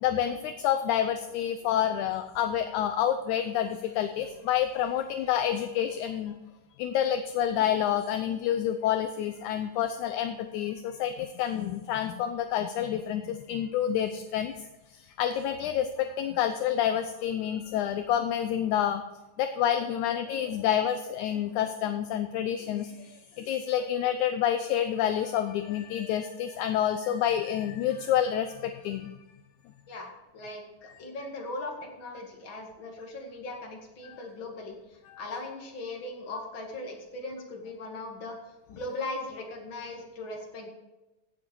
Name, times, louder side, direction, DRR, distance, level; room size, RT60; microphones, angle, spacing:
voice 1, 0.0-6.4 6.8-14.5 15.2-19.0 19.4-29.1 34.0-34.2 35.1-35.2, left 10 dB, 75° left, 9 dB, 1.8 m, -28 dB
voice 2, 29.9-38.3 38.7-40.7, left 2 dB, 40° left, 1 dB, 2.6 m, -39 dB
16.0 x 8.4 x 4.7 m, 1.0 s
omnidirectional pair, 4.0 m